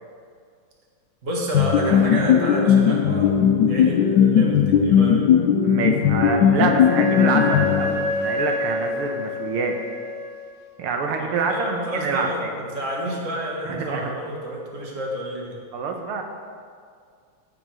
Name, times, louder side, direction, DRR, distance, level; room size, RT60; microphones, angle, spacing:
voice 1, 1.2-5.3 11.2-15.6, right 1 dB, 40° right, -2 dB, 1.9 m, -30 dB
sound 1, 1.5-8.2, left 8 dB, 70° left, 1.1 m, -18 dB
voice 2, 5.6-9.7 10.8-12.5 13.7-14.1 15.7-16.2, right 4 dB, 85° right, 3 dB, 1.8 m, -26 dB
Wind instrument woodwind instrument, 5.9-10.5, left 2 dB, 25° left, 2.0 m, -28 dB
14.0 x 5.3 x 6.2 m, 2.1 s
omnidirectional pair, 2.3 m